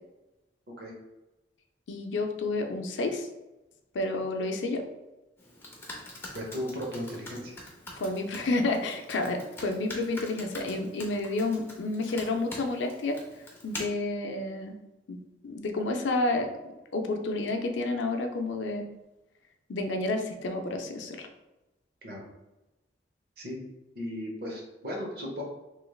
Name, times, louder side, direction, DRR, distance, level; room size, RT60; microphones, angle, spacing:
voice 1, 1.9-3.3 3.9-4.8 8.0-13.2 13.6-14.8 15.1-16.5 16.9-18.8 19.7-21.3, left 2 dB, 85° left, 5 dB, 0.4 m, -30 dB
Computer keyboard, 5.4-13.8, left 1 dB, 10° left, 0.5 m, -45 dB
voice 2, 6.3-7.6 22.0-22.3 23.4-23.6 23.9-25.4, equal, 55° right, -1 dB, 0.9 m, -36 dB
3.2 x 3.0 x 2.3 m, 1.0 s
head